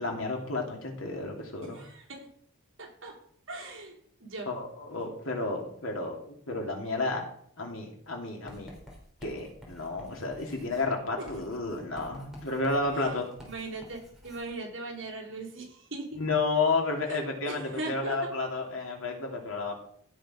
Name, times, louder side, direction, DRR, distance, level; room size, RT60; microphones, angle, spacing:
voice 1, 0.0-1.8 4.5-7.2 7.6-8.7 9.2-13.3 16.2-19.7, left 3 dB, 75° left, 1 dB, 2.8 m, -31 dB
voice 2, 1.6-2.3 2.8-3.1 3.5-4.5 11.2-11.3 11.8-11.9 13.0-13.1 13.4-16.2 17.1-18.2, right 2 dB, 65° right, -2 dB, 3.5 m, -39 dB
Writing, 8.5-14.5, left 1 dB, ahead, 2.9 m, -51 dB
15.5 x 5.2 x 5.0 m, 0.63 s
head